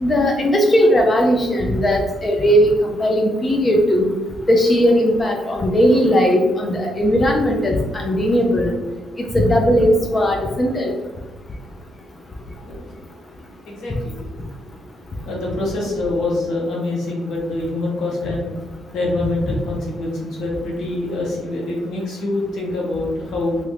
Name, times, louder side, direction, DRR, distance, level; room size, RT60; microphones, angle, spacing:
voice 1, 0.0-4.1 4.5-8.7 9.3-10.9, equal, 30° left, 1 dB, 0.5 m, -17 dB
voice 2, 13.6-14.2 15.3-18.5 18.9-23.6, left 2 dB, 75° left, -4 dB, 1.3 m, -25 dB
3.0 x 2.4 x 3.2 m, 1.2 s
cardioid pair, 90°, 0 cm